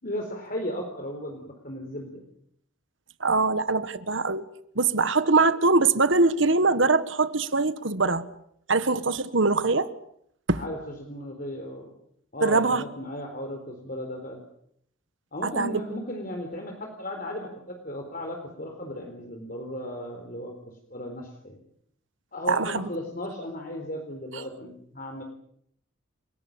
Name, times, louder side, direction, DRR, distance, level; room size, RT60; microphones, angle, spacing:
voice 1, 0.0-2.2 10.6-11.9 12.3-14.4 15.3-20.5 20.9-21.6 22.3-25.2, left 1 dB, 40° left, 3 dB, 4.1 m, -35 dB
voice 2, 3.2-4.5 4.7-8.2 8.7-9.9 10.5-10.6 12.4-12.8 15.4-15.8 22.5-22.9 24.3-24.4, right 3 dB, 65° right, 13 dB, 1.6 m, -23 dB
30.0 x 18.0 x 8.8 m, 0.71 s
head